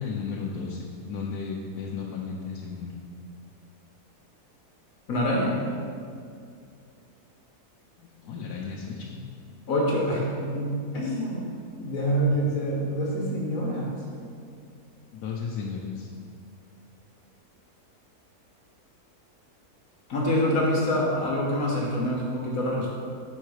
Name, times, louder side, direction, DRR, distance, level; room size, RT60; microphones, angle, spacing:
voice 1, 0.0-2.9 8.0-9.2 15.1-16.1, left 5 dB, 85° left, -3 dB, 1.1 m, -34 dB
voice 2, 5.1-5.5 9.7-11.4 11.8-13.9 20.1-22.9, equal, 65° left, -3 dB, 1.3 m, -26 dB
5.5 x 4.0 x 4.7 m, 2.3 s
omnidirectional pair, 1.6 m